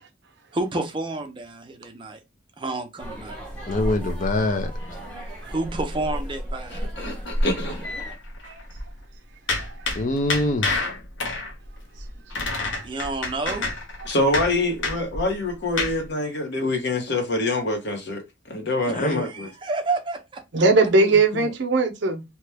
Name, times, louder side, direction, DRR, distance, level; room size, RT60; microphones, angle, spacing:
voice 1, 0.5-2.2 2.6-3.4 5.4-6.9 12.8-13.7 18.9-20.4, right 2 dB, 25° right, 0.6 m, -30 dB
sound 1, 3.0-8.1, equal, 5° left, 1.1 m, -32 dB
sound 2, 3.6-5.9 6.2-6.5 6.8-9.0 9.5-16.1, left 3 dB, 85° left, 0.7 m, -30 dB
voice 2, 3.7-4.7 10.0-10.7 18.9-19.3 21.0-21.5, left 2 dB, 45° left, 0.5 m, -25 dB
voice 3, 6.7-7.9 14.0-18.2 18.5-19.5, left 2 dB, 65° left, 1.0 m, -25 dB
voice 4, 9.5-9.9 20.5-22.2, right 3 dB, 65° right, 0.6 m, -20 dB
2.9 x 2.2 x 3.3 m
head